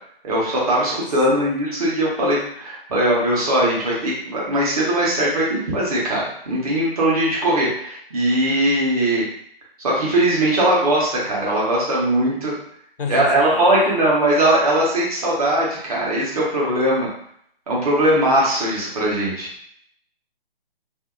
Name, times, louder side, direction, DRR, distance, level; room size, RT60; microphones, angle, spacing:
voice 1, 0.2-9.3 9.8-12.5 13.1-17.1 17.7-19.5, right 1 dB, 40° right, -5 dB, 1.0 m, -20 dB
voice 2, 0.9-1.5 13.0-14.0, left 5 dB, 65° left, 3 dB, 0.6 m, -31 dB
2.7 x 2.4 x 2.4 m, 0.68 s
figure-of-eight pair, 150°, 29 cm